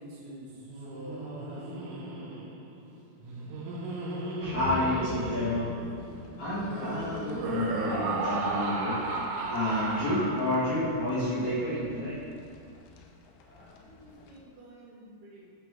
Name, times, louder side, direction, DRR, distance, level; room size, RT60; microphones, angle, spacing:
voice 1, 0.0-2.2 13.4-15.4, equal, 55° right, -8 dB, 4.0 m, -47 dB
Laughter, 0.6-11.1, right 3 dB, 75° right, 1.9 m, -35 dB
sound 1, 4.4-14.4, left 5 dB, 90° left, 2.3 m, -46 dB
voice 2, 4.4-5.7 6.4-9.0 9.5-12.2, left 1 dB, 50° left, -13 dB, 2.8 m, -29 dB
14.0 x 5.1 x 3.8 m, 2.3 s
omnidirectional pair, 5.7 m